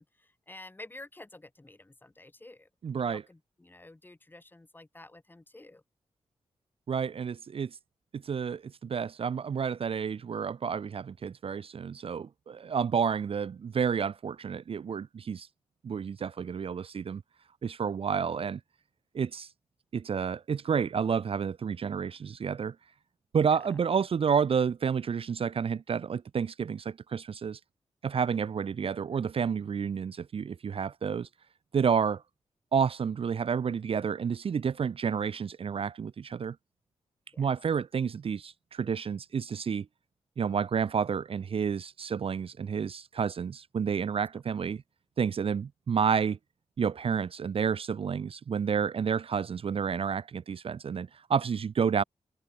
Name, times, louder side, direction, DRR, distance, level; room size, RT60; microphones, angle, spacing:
voice 1, 0.0-2.7 3.0-5.8 23.4-23.8 37.3-37.5, left 2 dB, 15° left, 4.6 m, -50 dB
voice 2, 2.8-3.2 6.9-7.7 8.1-15.5 15.8-17.2 17.6-18.6 19.1-19.5 19.9-22.7 23.3-27.6 28.0-31.3 31.7-32.2 32.7-36.6 37.4-39.9 40.4-44.8 45.2-46.4 46.8-52.0, right 6 dB, 55° right, 0.7 m, -30 dB
wide cardioid pair, 135°, 11 cm